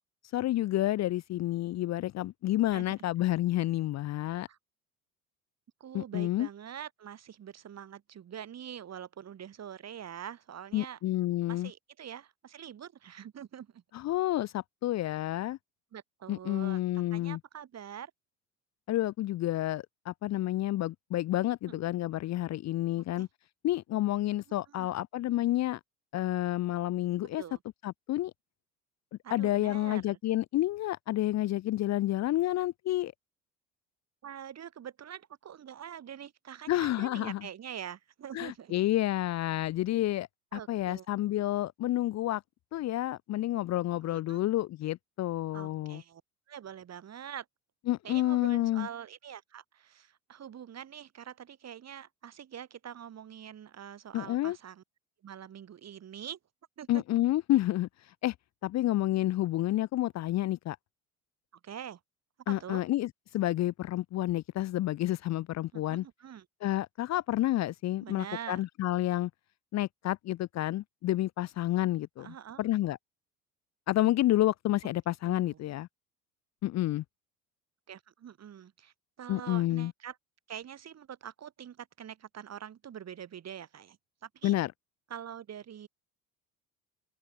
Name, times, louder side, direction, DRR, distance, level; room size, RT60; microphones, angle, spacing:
voice 1, 0.3-4.5 5.9-6.5 10.7-11.7 13.9-15.6 16.3-17.4 18.9-23.3 23.6-25.8 26.1-27.4 27.8-28.3 29.3-33.1 36.7-37.4 38.3-42.4 42.7-46.0 47.9-48.9 54.1-54.6 56.9-57.9 58.2-58.3 58.6-60.8 62.5-66.0 66.6-69.3 69.7-72.3 72.6-73.0 73.9-75.9 76.6-77.0 79.3-79.9 84.4-84.7, left 15 dB, 40° left, 0.9 m, -29 dB
voice 2, 5.8-11.0 11.5-13.8 15.9-16.8 17.1-18.1 21.7-21.8 23.0-23.3 24.5-24.9 27.4-27.6 29.2-30.2 34.2-38.8 40.5-41.1 44.1-44.4 45.5-46.2 46.5-47.5 48.0-54.8 55.2-56.4 56.8-57.0 61.6-62.0 62.5-62.9 65.7-66.5 68.0-68.6 72.2-72.6 75.3-75.6 77.9-80.2 80.5-84.6 85.1-85.9, right 9 dB, 35° right, 3.9 m, -45 dB
open air
figure-of-eight pair, 60°, 43 cm